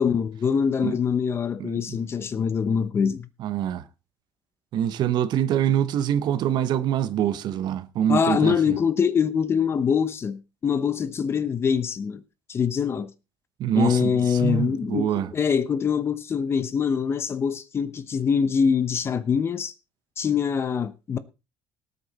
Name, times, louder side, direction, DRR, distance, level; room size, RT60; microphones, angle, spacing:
voice 1, 0.0-3.3 8.1-12.2 12.5-13.1 13.7-19.7 20.2-21.2, left 7 dB, 25° left, 0.9 m, -24 dB
voice 2, 1.6-2.0 3.4-3.8 4.7-8.6 13.6-15.3, right 10 dB, 55° right, 1.0 m, -25 dB
18.5 x 8.2 x 4.1 m
cardioid pair, 160°, 9 cm